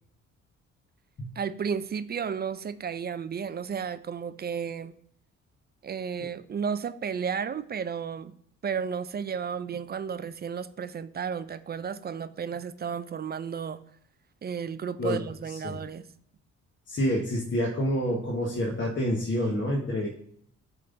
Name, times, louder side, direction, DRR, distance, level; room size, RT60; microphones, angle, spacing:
voice 1, 1.4-4.9 5.8-8.3 8.6-13.8 14.4-16.0, right 7 dB, 35° right, 13 dB, 0.4 m, -33 dB
voice 2, 16.9-20.1, equal, 40° left, -2 dB, 1.3 m, -28 dB
7.6 x 3.7 x 3.8 m, 0.67 s
cardioid pair, 90°, 30 cm